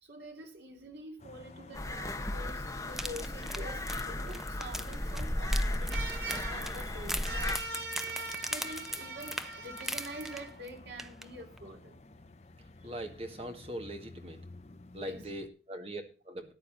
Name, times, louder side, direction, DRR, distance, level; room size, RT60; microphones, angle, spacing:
voice 1, 0.0-12.0 15.1-15.3 15.8-15.9, right 2 dB, 70° right, 2.9 m, -43 dB
sound 1, 1.2-15.5, left 2 dB, 35° left, 0.8 m, -52 dB
sound 2, 1.7-7.6, left 1 dB, 15° left, 1.1 m, -35 dB
sound 3, 2.9-10.7 11.0-11.2 11.6-11.7, equal, ahead, 0.5 m, -40 dB
voice 2, 12.8-14.4 14.9-16.5, right 1 dB, 35° right, 1.9 m, -41 dB
14.0 x 10.0 x 4.0 m
head